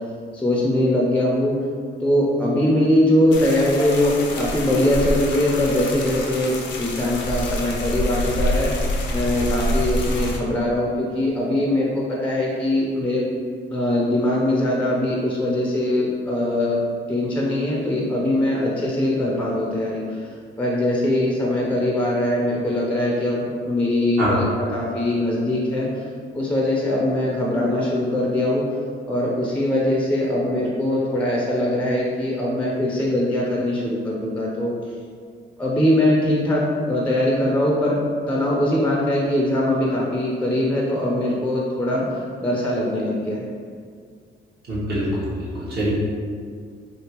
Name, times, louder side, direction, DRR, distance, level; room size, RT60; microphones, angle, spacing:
voice 1, 0.3-1.5 2.0-8.7 9.1-13.2 13.7-16.8 17.1-20.3 20.6-26.1 26.3-28.6 29.1-34.7 35.6-43.4, left 1 dB, 5° left, -4 dB, 0.5 m, -21 dB
sound 1, 3.3-10.4, left 1 dB, 65° left, 0.5 m, -26 dB
voice 2, 44.7-45.9, right 1 dB, 50° right, -8 dB, 1.1 m, -24 dB
3.4 x 2.4 x 2.9 m, 2.1 s
cardioid pair, 90°, 20 cm